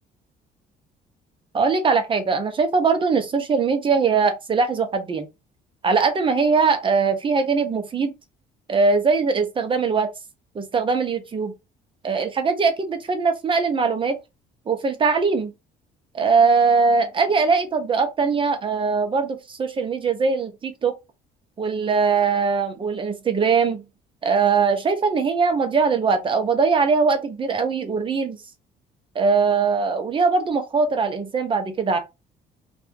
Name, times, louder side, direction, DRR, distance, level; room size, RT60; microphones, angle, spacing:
voice 1, 1.5-5.3 5.8-8.1 8.7-10.1 10.5-11.5 12.0-14.2 14.7-15.5 16.1-20.9 21.6-23.8 24.2-28.4 29.1-32.0, right 5 dB, 30° right, 0.8 m, -21 dB
2.7 x 2.5 x 3.5 m
cardioid pair, 110°, 17 cm